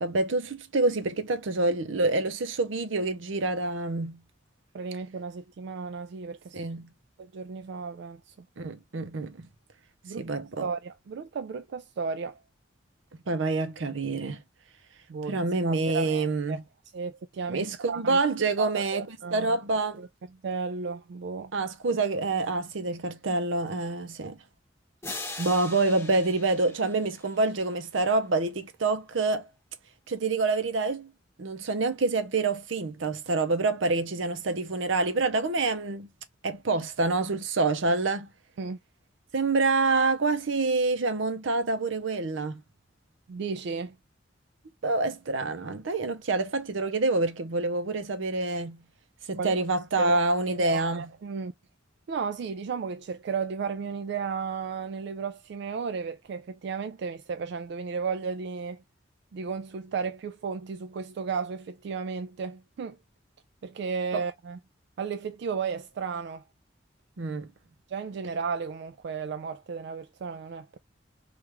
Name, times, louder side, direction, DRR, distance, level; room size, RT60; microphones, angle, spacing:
voice 1, 0.0-4.2 6.5-6.9 8.6-9.5 10.2-10.7 13.3-14.4 15.3-16.6 17.5-20.0 21.5-24.4 25.4-29.5 30.1-31.1 31.4-36.1 36.4-38.3 39.3-42.6 44.8-48.8 49.3-51.1 64.1-64.2 67.2-67.5, right 3 dB, 80° right, 0.7 m, -27 dB
voice 2, 4.7-6.6 7.2-8.3 10.0-10.3 10.6-12.4 15.1-16.6 16.9-18.2 18.6-19.6 20.0-20.1 20.4-21.5 38.6-38.8 43.3-44.0 49.4-49.5 50.0-50.2 50.5-51.5 52.1-58.8 59.3-63.0 63.6-64.6 65.0-66.4 67.9-70.8, right 5 dB, 60° right, 0.3 m, -34 dB
sound 1, 25.0-27.7, left 2 dB, 15° left, 0.8 m, -41 dB
3.4 x 2.5 x 2.9 m
head